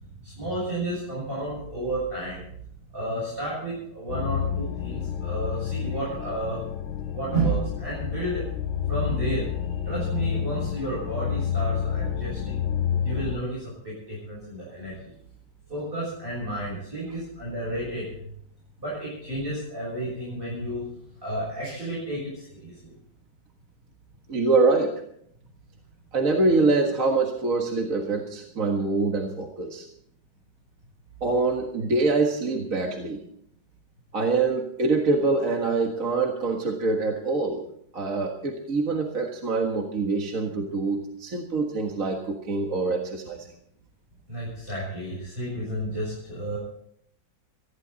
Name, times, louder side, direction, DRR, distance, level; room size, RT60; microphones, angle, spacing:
voice 1, 0.2-2.5 2.9-6.6 7.1-8.4 8.9-9.5 9.8-12.6 13.0-15.1 15.7-18.2 18.8-20.8 21.2-22.9 44.3-46.6, right 1 dB, 25° right, -7 dB, 7.2 m, -31 dB
sound 1, 4.1-13.4, left 8 dB, 80° left, 1.8 m, -29 dB
voice 2, 24.3-24.9 26.1-29.9 31.2-33.2 34.1-37.6 37.9-43.5, right 3 dB, 45° right, 2 dB, 1.9 m, -25 dB
19.0 x 15.5 x 4.1 m, 0.68 s
omnidirectional pair, 2.2 m